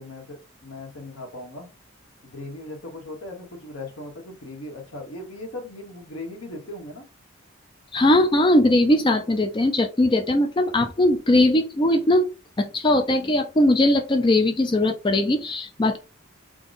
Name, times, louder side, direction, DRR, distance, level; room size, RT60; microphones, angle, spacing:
voice 1, 0.0-1.7 2.2-7.0, left 2 dB, 65° left, 2 dB, 1.2 m, -38 dB
voice 2, 7.9-12.3 12.6-16.0, left 1 dB, 20° left, 5 dB, 0.4 m, -20 dB
3.7 x 2.3 x 3.9 m, 0.30 s
head